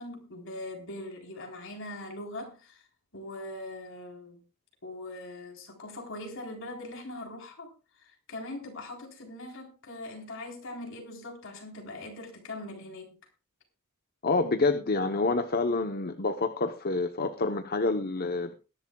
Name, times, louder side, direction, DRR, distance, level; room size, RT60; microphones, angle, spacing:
voice 1, 0.0-2.8 3.1-4.4 4.8-13.2, left 1 dB, 65° left, 3.8 m, -41 dB
voice 2, 14.2-18.5, left 3 dB, 45° left, 0.9 m, -27 dB
21.0 x 11.0 x 2.3 m
head